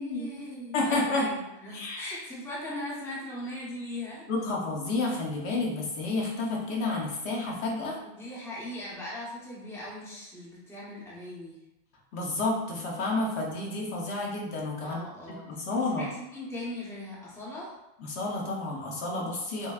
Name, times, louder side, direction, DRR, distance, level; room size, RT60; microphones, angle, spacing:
voice 1, 0.0-4.3 8.2-11.6 14.8-17.7, left 1 dB, 5° left, -6 dB, 0.7 m, -39 dB
voice 2, 0.7-1.3 1.7-2.0 4.3-8.0 12.1-15.0 15.3-16.1 18.0-19.7, left 2 dB, 80° left, -2 dB, 1.1 m, -30 dB
6.0 x 2.2 x 2.3 m, 0.96 s
omnidirectional pair, 1.1 m